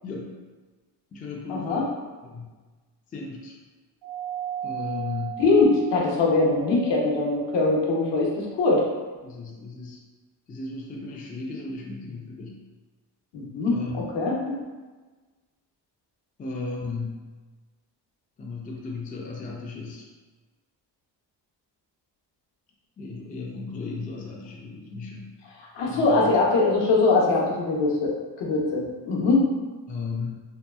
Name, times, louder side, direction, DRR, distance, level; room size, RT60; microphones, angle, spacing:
voice 1, 0.0-0.3 1.1-1.9 2.2-2.5 3.1-3.6 4.6-5.4 9.2-10.0 10.5-12.6 13.7-14.0 16.4-17.2 18.4-20.1 23.0-25.3 25.8-26.3 29.9-30.3, left 3 dB, 20° left, -1 dB, 0.3 m, -35 dB
voice 2, 1.5-1.8 5.4-8.9 13.3-14.6 25.7-29.5, left 3 dB, 70° left, -3 dB, 0.8 m, -22 dB
Doorbell, 4.0-8.9, right 8 dB, 55° right, 0.5 m, -37 dB
2.8 x 2.3 x 2.2 m, 1.3 s
cardioid pair, 95°, 43 cm